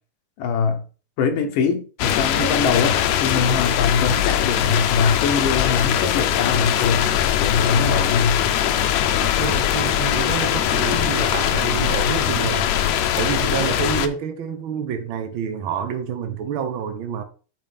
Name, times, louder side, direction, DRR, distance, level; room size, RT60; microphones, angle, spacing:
voice 1, 0.4-0.8 1.2-7.1 7.4-8.4, left 5 dB, 90° left, 2.8 m, -22 dB
sound 1, 2.0-14.1, left 10 dB, 75° left, 1.8 m, -21 dB
voice 2, 2.4-2.7 9.2-12.7 13.2-17.2, right 8 dB, 80° right, 1.1 m, -28 dB
13.0 x 4.3 x 3.4 m
omnidirectional pair, 3.6 m